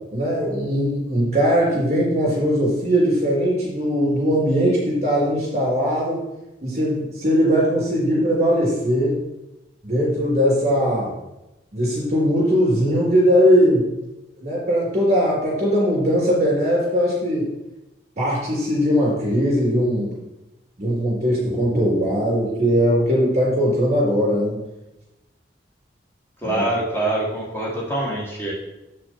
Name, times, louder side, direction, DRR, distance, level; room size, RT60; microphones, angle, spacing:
voice 1, 0.1-6.2 6.6-9.2 9.8-11.1 11.7-13.9 14.4-17.5 18.2-20.1 20.8-24.6 26.4-26.6, equal, 35° right, -5 dB, 3.3 m, -20 dB
voice 2, 26.4-28.5, right 1 dB, 10° left, -4 dB, 1.6 m, -24 dB
7.6 x 6.1 x 4.5 m, 0.95 s
head